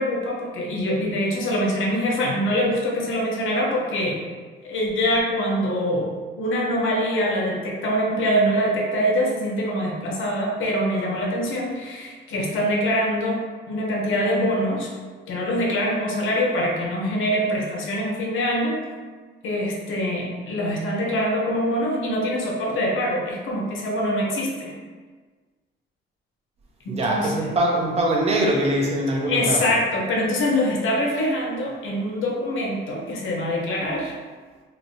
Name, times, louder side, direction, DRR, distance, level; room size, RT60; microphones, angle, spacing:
voice 1, 0.0-4.2 4.6-14.9 15.3-18.8 19.4-24.7 26.8-27.5 29.3-34.1, equal, 75° left, -2 dB, 0.8 m, -24 dB
voice 2, 26.9-29.6, right 1 dB, 30° right, -1 dB, 0.6 m, -22 dB
3.3 x 2.7 x 2.7 m, 1.4 s
cardioid pair, 160°, 21 cm